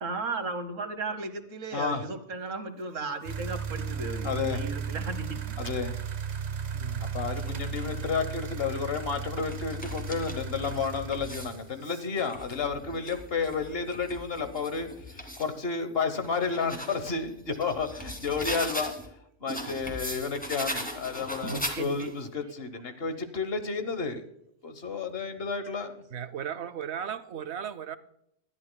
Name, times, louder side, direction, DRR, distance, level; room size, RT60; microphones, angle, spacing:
voice 1, 0.0-5.5 21.4-22.1, right 3 dB, 85° right, 9 dB, 1.6 m, -35 dB
voice 2, 1.7-2.0 4.2-4.6 5.6-6.0 7.0-18.9 19.4-24.2 24.6-26.0, left 5 dB, 55° left, 9 dB, 1.3 m, -31 dB
sound 1, 3.3-11.9, right 6 dB, 45° right, 0.6 m, -35 dB
voice 3, 6.7-7.2 11.8-12.0 26.1-28.0, right 8 dB, 65° right, 15 dB, 0.9 m, -36 dB
sound 2, 7.2-8.0 8.7-11.6 12.1-15.5 16.0-19.1 19.5-22.2, equal, 5° left, 2.2 m, -39 dB
19.5 x 12.0 x 2.2 m, 0.75 s
omnidirectional pair, 1.3 m